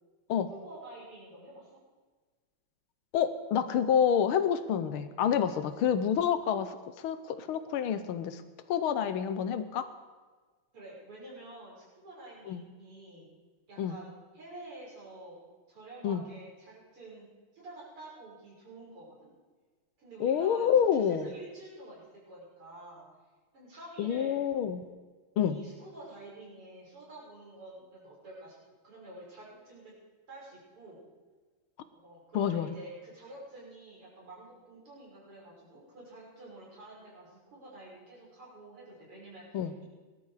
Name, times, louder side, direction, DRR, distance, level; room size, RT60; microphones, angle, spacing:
voice 1, 0.4-1.8 10.7-13.3 13.7-15.4 15.7-17.3 17.5-19.3 20.0-23.1 23.5-24.4 25.4-28.6 28.8-29.9 30.3-31.0 31.9-39.8, right 2 dB, 80° right, -5 dB, 6.6 m, -49 dB
voice 2, 3.1-8.4 8.7-9.9 12.5-12.6 13.8-14.0 16.0-16.2 20.2-21.3 24.0-24.8 25.4-25.6 32.3-32.7 39.5-39.7, left 8 dB, 75° left, 11 dB, 1.6 m, -28 dB
19.5 x 12.0 x 4.9 m, 1.4 s
omnidirectional pair, 2.4 m